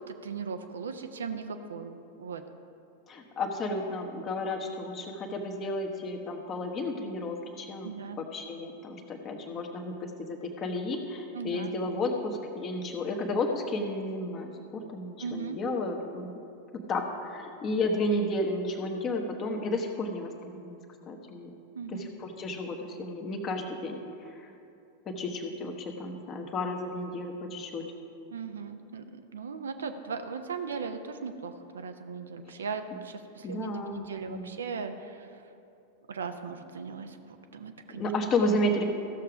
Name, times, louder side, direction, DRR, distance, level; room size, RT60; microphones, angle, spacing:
voice 1, 0.0-2.4 7.8-8.2 11.3-11.7 15.2-15.6 21.7-22.1 28.3-35.4 36.1-38.0, right 5 dB, 65° right, 7 dB, 0.6 m, -38 dB
voice 2, 3.1-16.4 16.9-20.8 21.1-21.5 21.9-24.5 25.0-27.8 33.4-34.5 37.9-38.9, left 1 dB, 30° left, 2 dB, 1.2 m, -32 dB
15.0 x 6.7 x 4.9 m, 2.6 s
figure-of-eight pair, 90°, 0 cm